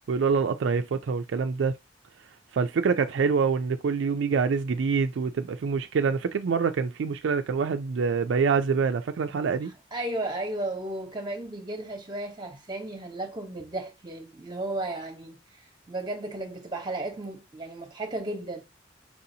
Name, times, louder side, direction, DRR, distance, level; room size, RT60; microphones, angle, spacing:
voice 1, 0.1-1.8 2.5-9.7, right 5 dB, 75° right, 0.4 m, -25 dB
voice 2, 9.9-15.4 15.9-18.6, right 2 dB, 25° right, 1.0 m, -34 dB
4.8 x 2.6 x 2.7 m
head